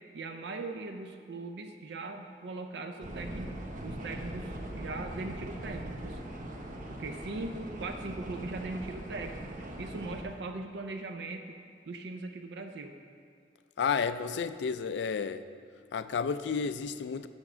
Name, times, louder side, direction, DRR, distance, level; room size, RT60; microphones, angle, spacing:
voice 1, 0.1-6.2 6.9-9.4 9.8-13.0, right 3 dB, 70° right, 5 dB, 0.5 m, -40 dB
sound 1, 3.0-10.2, right 1 dB, 45° right, 0.9 m, -41 dB
voice 2, 13.8-15.4 15.9-17.3, left 6 dB, 75° left, 13 dB, 0.4 m, -31 dB
7.1 x 6.6 x 6.1 m, 2.2 s
head